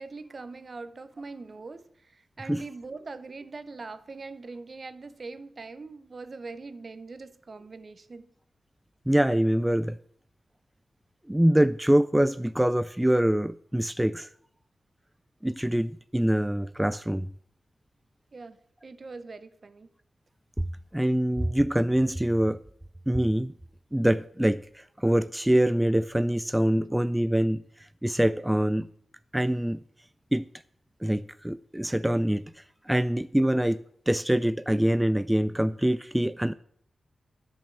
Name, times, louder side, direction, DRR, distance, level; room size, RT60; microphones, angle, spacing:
voice 1, 0.0-8.3 18.3-19.9, right 3 dB, 50° right, 0.8 m, -42 dB
voice 2, 9.1-10.0 11.3-14.3 15.4-17.3 20.6-20.7 20.9-22.6 23.1-23.5 23.9-28.9 29.3-29.8 30.3-30.5 31.0-36.5, right 1 dB, 10° right, 0.3 m, -25 dB
10.5 x 5.5 x 7.0 m
cardioid pair, 65°, 0 cm